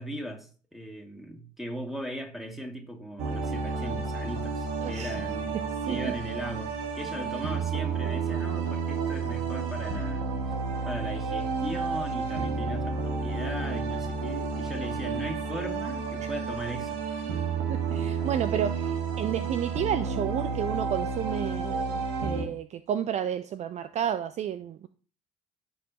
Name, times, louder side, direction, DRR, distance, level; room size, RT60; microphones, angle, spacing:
voice 1, 0.0-10.3 10.8-17.4, equal, ahead, 2.4 m, -38 dB
sound 1, 3.2-22.5, right 5 dB, 65° right, 1.5 m, -31 dB
voice 2, 4.8-5.1 5.9-6.1 17.7-24.9, right 9 dB, 40° right, 0.5 m, -31 dB
15.0 x 5.5 x 2.9 m
figure-of-eight pair, 50°, 17 cm